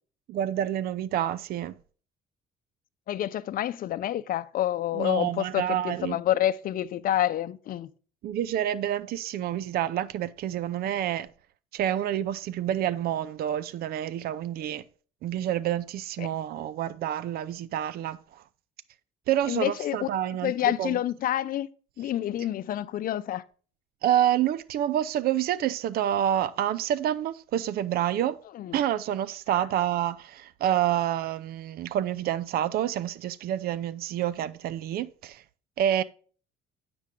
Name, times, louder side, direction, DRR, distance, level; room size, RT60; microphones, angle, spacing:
voice 1, 0.3-1.7 4.9-6.2 8.2-11.3 11.7-14.8 15.2-18.4 19.3-21.0 24.0-28.4 28.7-35.4 35.8-36.0, right 11 dB, 65° right, 0.6 m, -28 dB
voice 2, 3.1-7.9 16.2-16.3 19.5-20.1 20.4-21.7 22.0-23.4 28.5-28.8 29.5-29.7, left 12 dB, 55° left, 0.6 m, -28 dB
9.5 x 6.9 x 3.7 m
cardioid pair, 110°, 17 cm